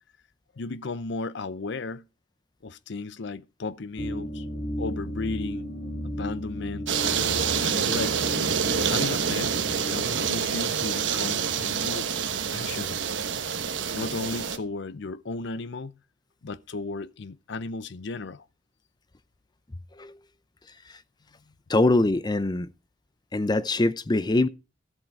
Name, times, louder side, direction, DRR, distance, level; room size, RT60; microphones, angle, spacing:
voice 1, 0.6-2.0 2.6-4.5 4.8-5.7 6.0-6.9 7.6-8.2 8.9-9.6 9.9-13.0 13.9-15.9 16.4-18.4, left 3 dB, 65° left, 0.6 m, -35 dB
sound 1, 4.0-10.4, equal, 40° left, 2.6 m, -35 dB
sound 2, 6.9-14.6, right 6 dB, 70° right, 1.1 m, -27 dB
voice 2, 21.7-22.7 23.3-24.5, left 2 dB, 20° left, 0.6 m, -23 dB
13.5 x 7.5 x 4.7 m
head